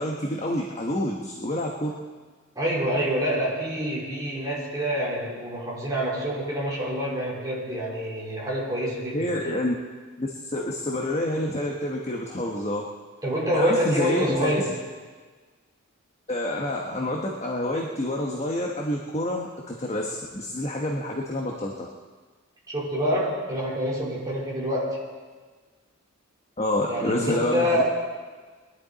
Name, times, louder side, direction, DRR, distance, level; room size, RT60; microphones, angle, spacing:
voice 1, 0.0-1.9 9.1-9.7 10.2-12.9 13.5-14.5 16.3-21.9 26.6-27.8, left 1 dB, 30° left, -1 dB, 1.2 m, -28 dB
voice 2, 2.6-9.3 13.2-14.8 22.7-25.0 26.9-27.8, equal, 15° right, -5 dB, 3.9 m, -27 dB
22.0 x 11.5 x 4.1 m, 1.4 s
head